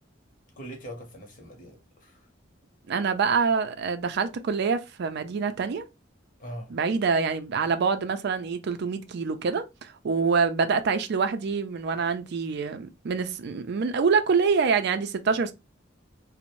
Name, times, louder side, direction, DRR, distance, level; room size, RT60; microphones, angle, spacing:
voice 1, 0.6-2.3 6.4-6.7 15.3-15.4, equal, 45° left, 0.9 m, -42 dB
voice 2, 2.9-5.8 6.7-15.5, right 5 dB, 60° right, 0.4 m, -26 dB
2.6 x 2.0 x 2.9 m
head